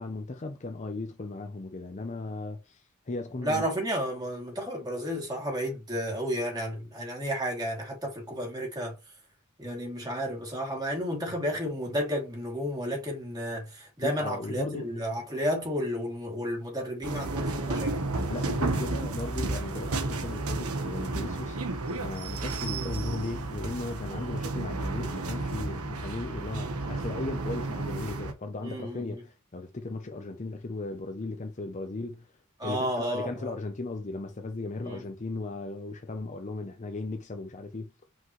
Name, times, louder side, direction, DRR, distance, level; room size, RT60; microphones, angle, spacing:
voice 1, 0.0-3.7 14.0-14.9 18.3-21.6 22.0-32.3 32.6-37.9, left 2 dB, 35° left, 0.6 m, -36 dB
voice 2, 3.4-8.9 9.6-18.0 22.7-22.9 26.6-26.8 28.6-29.2 32.6-33.5 34.8-35.0, equal, 20° right, 2.7 m, -32 dB
sound 1, 17.0-28.3, right 2 dB, 80° right, 1.2 m, -32 dB
5.7 x 5.4 x 3.1 m
head